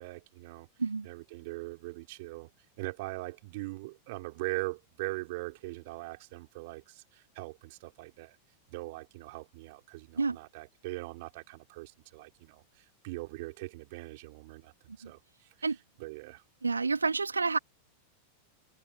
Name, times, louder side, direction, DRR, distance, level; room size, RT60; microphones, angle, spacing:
voice 1, 0.0-0.7 1.0-2.5 2.8-8.4 8.7-15.2 16.0-16.4, right 23 dB, 50° right, 4.5 m, -41 dB
voice 2, 16.6-17.6, right 4 dB, 80° right, 1.6 m, -28 dB
figure-of-eight pair, 90°, 0 cm